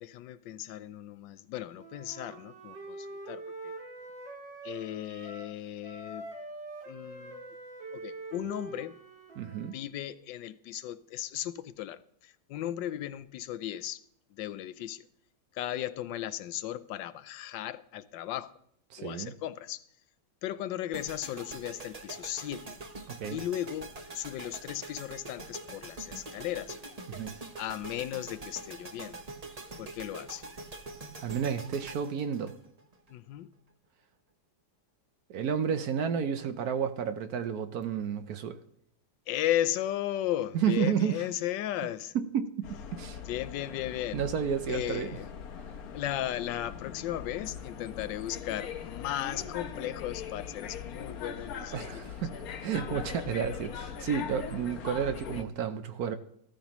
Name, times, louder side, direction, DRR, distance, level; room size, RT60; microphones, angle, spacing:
voice 1, 0.0-3.7 4.6-6.3 6.9-7.4 7.9-8.9 9.7-14.0 14.3-15.1 15.5-18.5 19.0-19.8 20.4-22.6 23.3-26.8 27.6-29.2 29.8-30.4 33.1-33.5 39.3-42.1 43.2-44.2 44.7-45.3 45.9-52.0, left 12 dB, 85° left, 1.3 m, -36 dB
Wind instrument woodwind instrument, 1.8-5.6 5.8-9.8, right 2 dB, 85° right, 3.0 m, -44 dB
voice 2, 9.4-9.8 18.9-19.3 23.1-23.4 27.1-27.3 31.2-32.5 35.3-38.6 40.5-41.2 42.1-43.2 44.1-45.2 51.7-56.2, right 7 dB, 65° right, 1.1 m, -31 dB
sound 1, 20.9-33.1, right 2 dB, 30° right, 0.8 m, -44 dB
sound 2, 42.6-55.4, left 7 dB, 60° left, 1.2 m, -41 dB
14.0 x 13.5 x 3.0 m
omnidirectional pair, 2.0 m